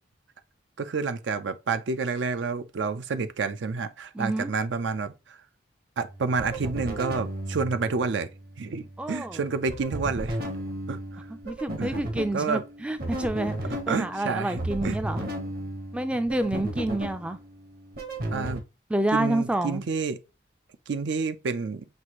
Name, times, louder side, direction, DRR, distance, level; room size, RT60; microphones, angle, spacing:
voice 1, 0.8-5.4 6.0-8.3 8.6-10.5 10.9-11.2 11.8-11.9 12.3-12.6 13.7-15.0 16.1-16.3 18.3-18.6 19.1-20.2 20.9-21.9, right 4 dB, 80° right, 0.5 m, -29 dB
voice 2, 4.1-4.5 9.0-9.4 11.5-15.2 15.9-17.4 18.9-19.8, right 1 dB, 5° right, 0.3 m, -28 dB
sound 1, 6.0-18.6, right 1 dB, 55° right, 1.0 m, -35 dB
6.0 x 2.5 x 2.9 m
head